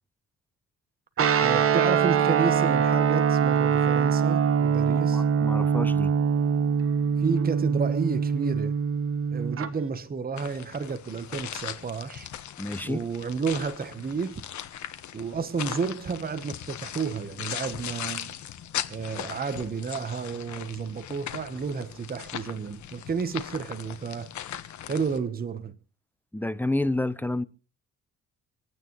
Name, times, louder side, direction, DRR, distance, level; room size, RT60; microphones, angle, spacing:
Guitar, 1.2-9.7, right 7 dB, 45° right, 1.3 m, -23 dB
voice 1, 1.4-5.2 7.2-8.7 9.3-12.3 12.8-14.4 15.1-18.3 18.9-24.3 24.9-25.8, right 5 dB, 30° right, 1.1 m, -31 dB
voice 2, 4.9-6.1 12.6-13.1 26.3-27.4, left 1 dB, 5° left, 0.7 m, -29 dB
sound 1, 10.4-25.2, left 11 dB, 70° left, 1.4 m, -39 dB
27.5 x 9.3 x 3.1 m
cardioid pair, 90°, 30 cm